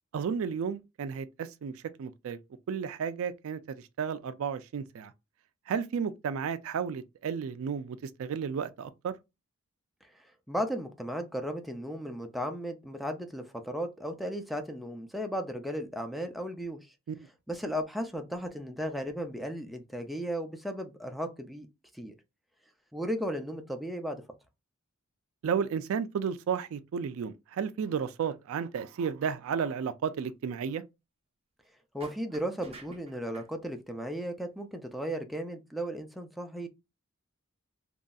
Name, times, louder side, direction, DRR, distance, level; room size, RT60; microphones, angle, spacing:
voice 1, 0.1-2.4 2.7-5.1 5.7-9.1 17.1-17.2 25.4-30.8, right 7 dB, 70° right, 0.3 m, -33 dB
voice 2, 10.1-16.9 17.5-21.7 21.9-22.1 22.9-24.2 31.9-36.7, equal, ahead, 0.4 m, -35 dB
sound 1, 32.0-33.5, right 2 dB, 30° right, 0.7 m, -49 dB
3.0 x 2.6 x 2.3 m
head